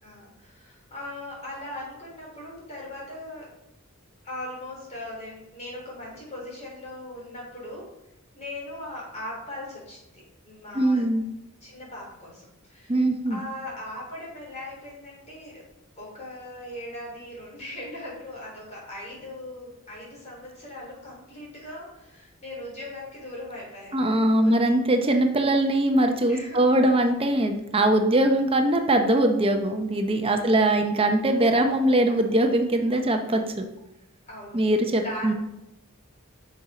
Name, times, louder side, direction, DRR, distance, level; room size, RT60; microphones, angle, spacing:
voice 1, 0.0-3.5 4.2-7.9 8.3-11.1 11.6-13.0 13.3-15.6 16.0-24.0 24.3-24.7 26.3-26.7 30.4-30.7 34.3-34.7 35.0-35.3, left 1 dB, 30° left, -4 dB, 3.5 m, -39 dB
voice 2, 10.7-11.2 12.9-13.4 23.9-33.7 34.5-35.3, right 1 dB, 25° right, 5 dB, 0.7 m, -22 dB
6.9 x 6.4 x 4.9 m, 0.86 s
head